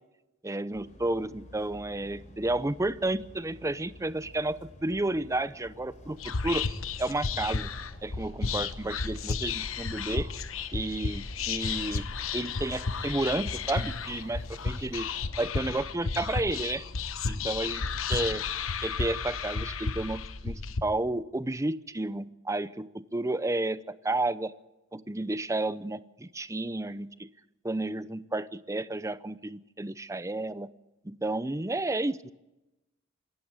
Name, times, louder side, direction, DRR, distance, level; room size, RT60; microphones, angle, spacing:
voice 1, 0.4-6.7 7.0-7.7 8.0-10.3 10.7-12.1 12.3-15.1 15.4-16.9 17.3-18.4 18.8-24.5 24.9-27.3 27.6-30.7 31.0-32.3, right 2 dB, 15° right, 15 dB, 0.6 m, -31 dB
sound 1, 0.7-16.6, left 1 dB, 35° left, 3.8 m, -51 dB
Whispering, 6.2-20.8, left 5 dB, 70° left, 1.1 m, -33 dB
25.5 x 13.5 x 8.2 m, 0.98 s
head